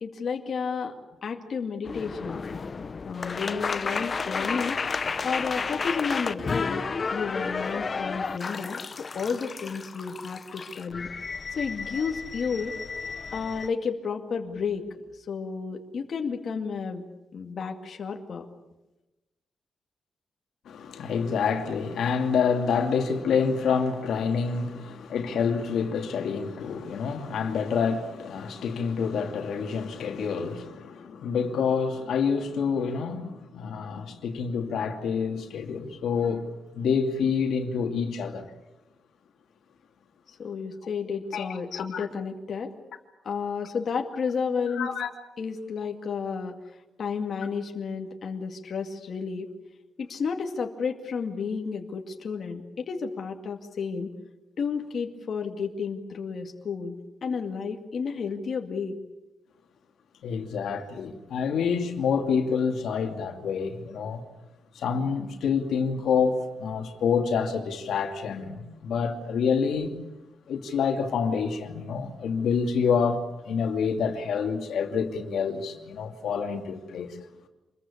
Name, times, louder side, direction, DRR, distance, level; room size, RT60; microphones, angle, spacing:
voice 1, 0.0-2.4 3.1-4.8 5.2-6.8 7.1-11.1 11.5-12.8 13.3-14.8 15.1-17.1 17.3-18.5 40.3-42.7 43.2-44.9 45.4-49.5 50.0-54.1 54.6-59.0, left 5 dB, 50° left, 2.2 m, -32 dB
sound 1, 1.8-13.7, left 4 dB, 35° left, 0.9 m, -32 dB
voice 2, 20.7-36.5 36.7-38.5 41.3-42.1 44.7-45.1 60.2-64.2 64.7-69.9 70.5-77.2, left 6 dB, 80° left, 2.7 m, -27 dB
27.0 x 22.0 x 8.6 m
wide cardioid pair, 145°, 0 cm